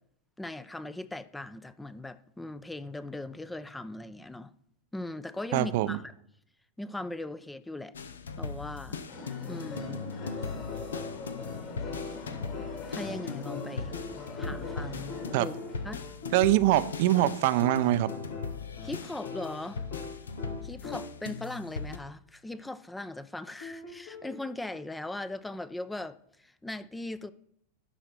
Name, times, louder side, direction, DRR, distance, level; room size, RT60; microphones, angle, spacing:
voice 1, 0.4-4.5 4.9-6.1 6.8-7.9 8.4-9.0 9.5-10.0 12.0-12.2 12.9-13.9 14.3-15.5 15.8-16.0 18.8-19.8 20.6-27.3, left 2 dB, 10° left, 0.5 m, -39 dB
voice 2, 5.5-6.0 15.3-15.5 16.3-18.1, right 15 dB, 60° right, 0.5 m, -24 dB
sound 1, 7.9-22.0, left 5 dB, 90° left, 0.7 m, -39 dB
sound 2, 9.1-15.9, left 3 dB, 45° left, 3.1 m, -43 dB
sound 3, 9.8-21.4 23.6-24.4, left 4 dB, 70° left, 3.9 m, -42 dB
11.0 x 4.0 x 6.0 m
hypercardioid pair, 105°, 0 cm